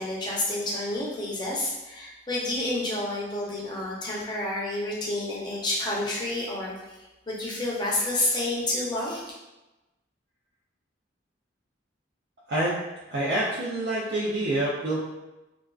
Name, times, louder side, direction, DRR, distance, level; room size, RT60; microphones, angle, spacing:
voice 1, 0.0-7.0 7.3-9.2, left 1 dB, 25° left, -5 dB, 0.5 m, -29 dB
voice 2, 13.1-15.0, right 1 dB, 70° right, -8 dB, 0.5 m, -27 dB
2.4 x 2.2 x 2.3 m, 1.0 s
head